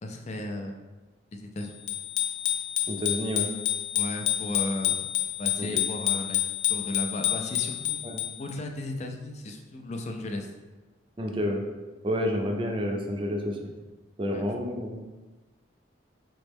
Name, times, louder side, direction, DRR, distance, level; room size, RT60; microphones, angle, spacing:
voice 1, 0.0-0.8 1.3-1.9 3.9-5.0 5.4-6.4 6.7-8.0 8.4-10.5 14.3-14.4, left 1 dB, 35° left, 3 dB, 0.4 m, -35 dB
Bicycle bell, 1.9-8.5, left 12 dB, 85° left, 0.6 m, -29 dB
voice 2, 2.9-3.5 5.6-5.8 8.0-8.2 11.2-11.6 12.0-13.6 14.2-15.0, equal, 25° right, 2 dB, 0.4 m, -29 dB
4.3 x 3.1 x 3.4 m, 1.2 s
head